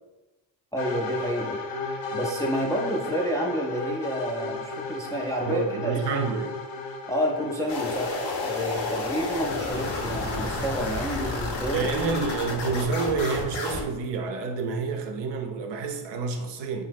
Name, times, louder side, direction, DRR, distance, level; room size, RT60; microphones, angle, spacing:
voice 1, 0.7-1.6 2.1-6.2 7.1-8.1 8.4-11.9, equal, 5° left, 0.4 m, -29 dB
sound 1, 0.8-12.5, left 3 dB, 80° left, 0.6 m, -36 dB
voice 2, 5.4-6.6 11.7-16.8, right 4 dB, 65° right, 0.6 m, -28 dB
sound 2, 7.7-13.8, left 2 dB, 60° left, 0.9 m, -31 dB
2.8 x 2.1 x 3.4 m
supercardioid pair, 55°, 47 cm